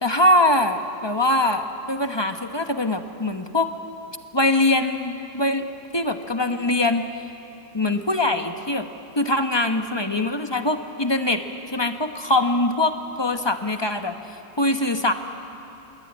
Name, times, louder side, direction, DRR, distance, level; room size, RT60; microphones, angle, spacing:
voice 1, 0.0-3.7 4.3-5.7 5.9-7.1 7.7-8.9 9.2-11.4 11.7-14.2 14.6-15.1, left 1 dB, 20° left, 6 dB, 0.8 m, -22 dB
26.5 x 22.0 x 9.5 m, 2.8 s
omnidirectional pair, 1.9 m